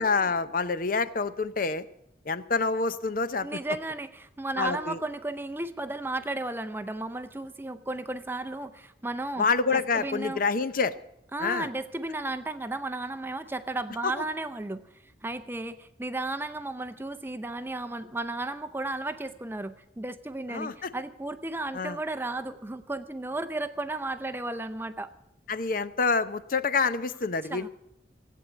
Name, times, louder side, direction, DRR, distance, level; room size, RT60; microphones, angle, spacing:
voice 1, 0.0-1.8 2.3-3.5 4.6-5.0 9.4-10.9 11.4-11.7 14.0-14.1 20.5-20.9 21.7-22.0 25.5-27.7, left 4 dB, 50° left, 13 dB, 0.6 m, -27 dB
voice 2, 3.4-9.5 9.7-10.4 11.3-14.8 15.2-25.1 27.5-27.7, right 2 dB, 10° right, 10 dB, 0.5 m, -34 dB
16.5 x 8.5 x 8.1 m, 0.81 s
head